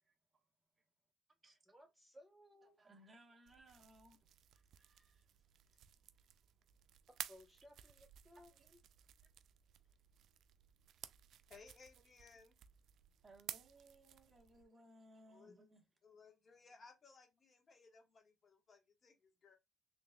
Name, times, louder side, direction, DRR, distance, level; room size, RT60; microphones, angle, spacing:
voice 1, 0.0-0.5 0.8-0.9 1.4-1.7 2.6-4.3 4.5-5.9 6.2-6.5 9.9-10.0 12.0-12.1 13.2-15.8, right 1 dB, 30° right, 1.3 m, -65 dB
voice 2, 1.7-2.8 7.1-8.5, equal, 5° right, 0.9 m, -62 dB
sound 1, 3.5-14.6, right 10 dB, 75° right, 0.3 m, -55 dB
voice 3, 11.5-12.5 15.3-15.6 16.0-19.6, left 4 dB, 45° left, 1.4 m, -62 dB
4.1 x 3.3 x 2.3 m
cardioid pair, 90°, 0 cm